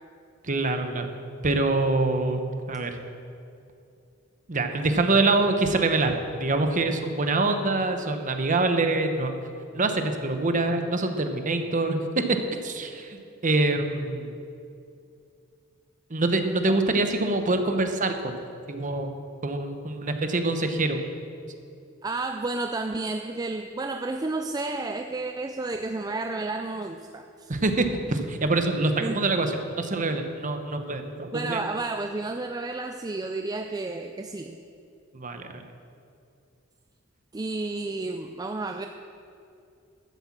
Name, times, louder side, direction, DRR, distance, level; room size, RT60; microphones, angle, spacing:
voice 1, 0.4-1.1 1.4-2.4 2.7-3.0 4.5-9.3 9.7-12.4 12.6-13.2 13.4-14.4 16.1-18.4 18.7-19.1 19.4-21.0 27.5-31.6 35.1-35.6, right 2 dB, 40° right, 6 dB, 1.0 m, -25 dB
voice 2, 22.0-27.5 29.0-29.2 31.3-34.6 37.3-38.9, right 3 dB, 20° right, 5 dB, 0.4 m, -31 dB
12.5 x 8.0 x 7.4 m, 2.5 s
head